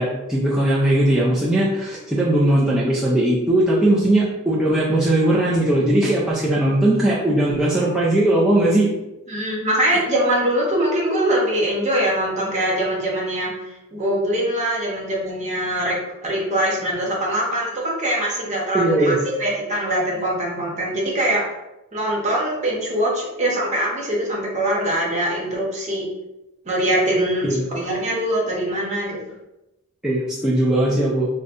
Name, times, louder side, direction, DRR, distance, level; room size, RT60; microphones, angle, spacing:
voice 1, 0.0-8.9 18.7-19.2 27.4-27.7 30.0-31.3, right 1 dB, 5° right, -8 dB, 0.5 m, -19 dB
voice 2, 9.3-13.5 13.9-19.1 19.4-21.4 21.9-26.0 26.6-27.4 27.7-29.2, right 1 dB, 35° right, -3 dB, 1.0 m, -22 dB
5.0 x 2.2 x 2.5 m, 0.96 s
head